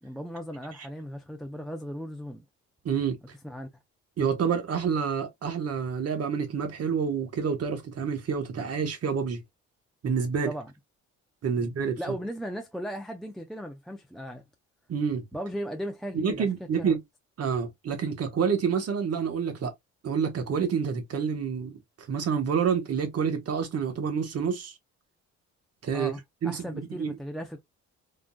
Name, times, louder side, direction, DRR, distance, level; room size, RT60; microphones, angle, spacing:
voice 1, 0.0-2.4 3.4-3.7 10.5-10.7 12.0-14.4 15.3-16.5 16.8-16.9 25.9-27.6, equal, ahead, 0.5 m, -37 dB
voice 2, 2.8-3.2 4.2-9.4 10.0-10.5 11.4-12.0 14.9-15.2 16.1-17.0 17.4-19.7 20.0-21.8 22.1-24.7 25.8-26.1 26.4-27.1, right 6 dB, 55° right, 1.1 m, -28 dB
3.7 x 2.4 x 2.2 m
cardioid pair, 90°, 30 cm